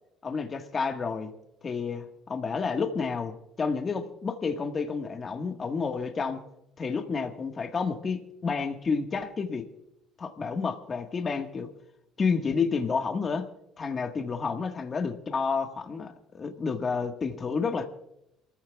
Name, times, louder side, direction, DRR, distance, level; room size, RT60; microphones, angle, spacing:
voice 1, 0.2-1.3 1.6-6.4 6.8-9.7 10.2-11.7 12.2-13.5 13.8-17.9, left 5 dB, 30° left, 4 dB, 1.5 m, -30 dB
28.0 x 14.5 x 2.4 m, 0.83 s
cardioid pair, 120°, 0 cm